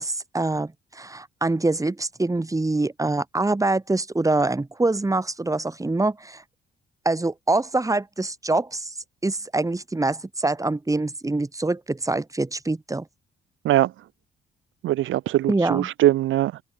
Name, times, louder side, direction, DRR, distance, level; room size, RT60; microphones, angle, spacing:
voice 1, 0.0-6.4 7.1-8.9 9.2-13.0 15.5-15.9, right 2 dB, 15° right, 3.9 m, -25 dB
voice 2, 14.8-16.6, right 14 dB, 80° right, 1.5 m, -21 dB
cardioid pair, 90°, 20 cm